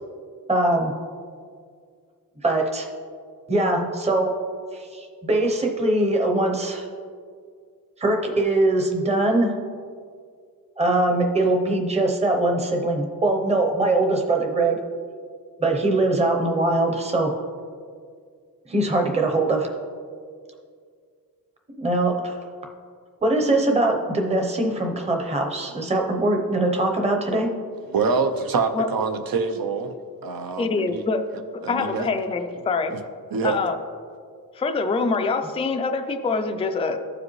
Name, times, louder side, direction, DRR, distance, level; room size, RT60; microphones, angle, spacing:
voice 1, 0.5-0.9 2.4-2.9 3.5-4.3 4.7-6.9 8.0-9.5 10.8-14.8 15.6-17.3 18.7-19.7 21.7-22.4 23.2-27.5, right 2 dB, 20° right, 0.8 m, -22 dB
voice 2, 27.9-29.9 30.2-31.0 31.6-32.1 32.9-33.0 33.3-33.6, right 4 dB, 75° right, 0.7 m, -25 dB
voice 3, 30.6-31.2 31.5-32.9 33.4-33.8 34.6-37.0, left 4 dB, 15° left, 0.3 m, -25 dB
14.5 x 4.9 x 3.1 m
wide cardioid pair, 180°, 36 cm